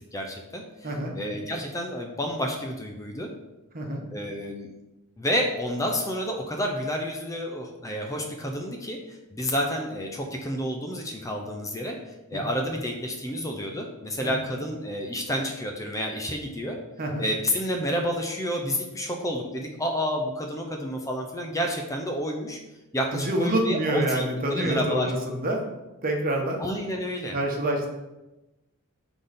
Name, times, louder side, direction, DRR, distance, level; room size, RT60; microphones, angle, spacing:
voice 1, 0.0-3.3 4.1-4.7 5.2-12.0 12.3-16.8 17.2-22.6 22.9-24.2 24.5-25.1 26.6-27.4, equal, 15° left, 2 dB, 0.7 m, -30 dB
voice 2, 23.1-25.7 26.0-26.6 27.3-27.9, right 1 dB, 40° right, 1 dB, 1.2 m, -26 dB
6.1 x 3.9 x 5.2 m, 1.0 s
head